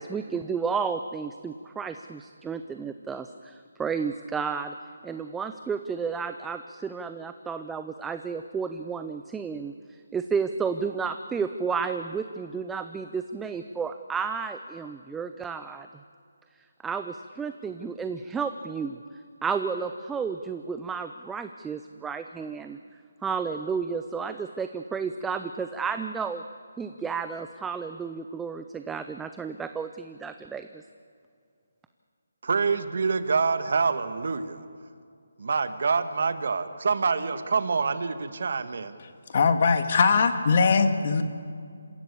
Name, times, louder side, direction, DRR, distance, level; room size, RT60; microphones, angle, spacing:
voice 1, 0.0-4.7 5.0-15.9 16.8-19.0 19.4-22.8 23.2-26.4 26.8-30.8, right 5 dB, 5° right, 8 dB, 0.5 m, -32 dB
voice 2, 32.4-34.6 35.4-39.0, right 5 dB, 60° right, 11 dB, 1.4 m, -26 dB
voice 3, 39.3-41.2, left 5 dB, 45° left, 8 dB, 1.8 m, -21 dB
27.0 x 15.5 x 8.4 m, 2.3 s
hypercardioid pair, 165°, 0 cm